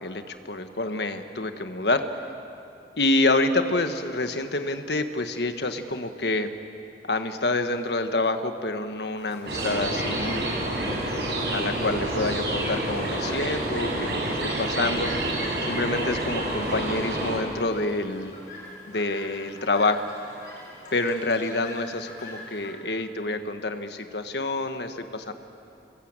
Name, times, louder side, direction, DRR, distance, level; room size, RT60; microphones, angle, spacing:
voice 1, 0.0-2.0 3.0-6.5 7.1-11.0 11.5-15.1 15.7-18.4 18.9-20.1 20.9-25.3, left 2 dB, 70° left, 7 dB, 1.5 m, -27 dB
Chirp tweet, 9.2-22.7, left 2 dB, 45° left, 7.2 m, -44 dB
sound 1, 9.5-17.4, right 1 dB, 70° right, 6.7 m, -28 dB
27.5 x 21.0 x 9.0 m, 2.7 s
head